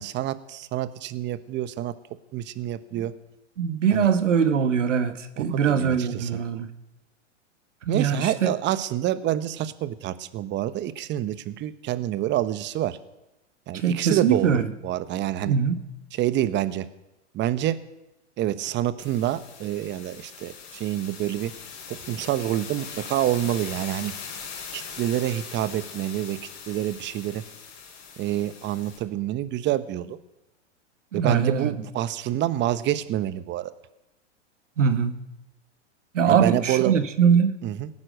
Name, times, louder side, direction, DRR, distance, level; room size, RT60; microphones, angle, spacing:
voice 1, 0.0-1.9 2.3-3.1 3.9-4.1 5.4-6.4 7.9-13.0 13.7-15.5 16.1-16.9 17.3-17.8 18.4-21.5 21.9-24.1 24.7-26.4 26.7-27.4 28.2-30.2 31.1-33.7 36.3-36.9 37.6-37.9, right 13 dB, 30° right, 14 dB, 1.0 m, -27 dB
voice 2, 3.6-6.7 7.9-8.5 13.7-14.7 15.5-15.7 31.1-31.7 34.8-35.2 36.1-37.5, right 7 dB, 85° right, 10 dB, 1.5 m, -22 dB
sound 1, 19.0-29.0, left 6 dB, 60° left, 5.2 m, -41 dB
17.5 x 9.7 x 6.5 m, 0.98 s
hypercardioid pair, 115°, 36 cm